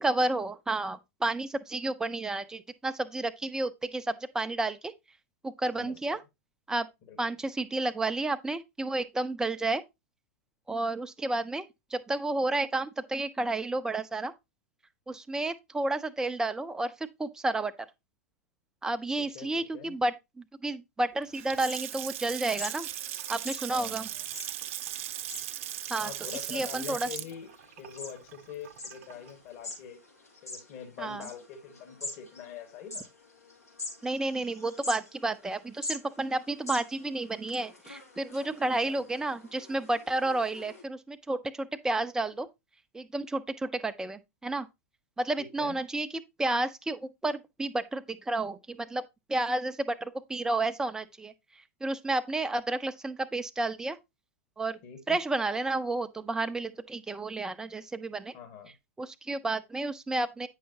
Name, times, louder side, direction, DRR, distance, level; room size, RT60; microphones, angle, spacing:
voice 1, 0.0-4.9 5.4-6.2 6.7-6.9 7.2-9.8 10.7-11.7 11.9-14.3 15.1-16.9 17.2-17.7 18.8-22.9 23.3-24.1 25.9-26.1 26.5-27.1 31.0-31.3 34.0-42.5 42.9-44.7 45.2-46.1 46.4-49.0 49.3-51.3 51.8-54.0 54.6-54.8 55.1-58.3 59.0-60.5, right 2 dB, 5° right, 0.6 m, -31 dB
voice 2, 5.8-6.2 7.0-7.3 19.2-20.0 23.7-24.2 26.0-27.5 27.8-30.0 30.4-33.1 38.4-39.0 45.4-45.8 54.8-55.2 58.3-58.7, left 8 dB, 45° left, 1.7 m, -45 dB
Water tap faucet / Sink (filling or washing) / Splash splatter, 21.2-29.3, right 12 dB, 55° right, 0.6 m, -38 dB
sound 1, 21.3-40.8, left 2 dB, 90° left, 3.0 m, -45 dB
9.1 x 5.7 x 2.8 m
figure-of-eight pair, 95°, 8 cm